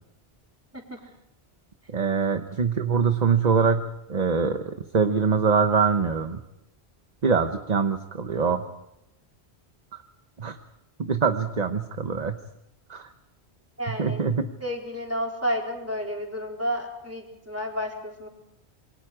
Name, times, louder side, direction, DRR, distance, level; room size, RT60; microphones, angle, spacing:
voice 1, 1.9-4.6 4.9-6.4 7.2-8.7 10.4-10.6 11.0-12.4 12.9-13.1 14.0-14.5, right 5 dB, 40° right, 8 dB, 1.0 m, -23 dB
voice 2, 13.8-14.3 14.6-18.3, equal, 15° right, 0 dB, 4.0 m, -31 dB
27.0 x 23.0 x 4.9 m, 0.83 s
omnidirectional pair, 1.1 m